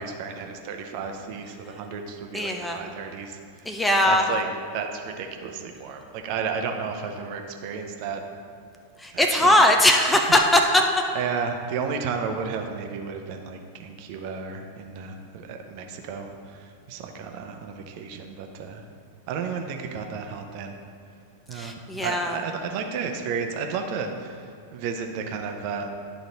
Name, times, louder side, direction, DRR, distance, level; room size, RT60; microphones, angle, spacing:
voice 1, 0.0-3.8 4.0-4.5 4.7-8.2 9.1-9.5 11.1-18.9 19.3-20.8 21.5-25.9, right 5 dB, 45° right, 4 dB, 0.7 m, -33 dB
voice 2, 2.3-2.8 3.7-4.3 9.0-10.8 21.5-22.4, left 1 dB, 5° left, 3 dB, 0.5 m, -20 dB
10.5 x 4.0 x 3.9 m, 2.2 s
figure-of-eight pair, 90°, 0 cm